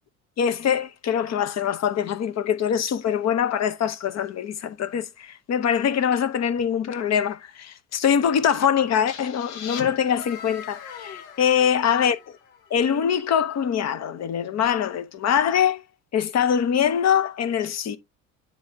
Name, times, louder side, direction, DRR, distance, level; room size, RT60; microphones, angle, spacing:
voice 1, 0.4-12.2 12.7-15.8 16.1-18.0, left 8 dB, 40° left, 1.0 m, -23 dB
sound 1, 9.1-12.8, left 7 dB, 65° left, 1.3 m, -40 dB
10.0 x 3.4 x 2.7 m
hypercardioid pair, 70°, 42 cm